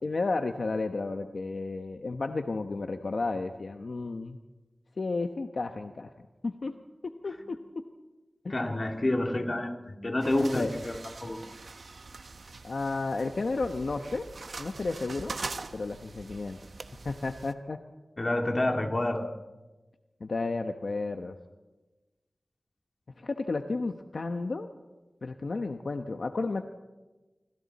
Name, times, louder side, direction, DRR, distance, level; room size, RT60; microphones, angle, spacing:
voice 1, 0.0-4.4 5.0-6.1 6.4-6.7 7.0-7.6 8.4-8.6 10.5-10.7 12.6-14.2 14.6-15.3 15.7-16.6 17.0-17.8 20.2-21.3 23.2-24.7 25.2-26.6, left 3 dB, 65° left, 6 dB, 1.0 m, -32 dB
voice 2, 8.5-11.4 18.2-19.3, left 1 dB, 35° left, 3 dB, 2.4 m, -28 dB
sound 1, 10.2-17.5, right 3 dB, 70° right, 1.1 m, -43 dB
27.0 x 25.5 x 4.2 m, 1.2 s
wide cardioid pair, 90°, 0 cm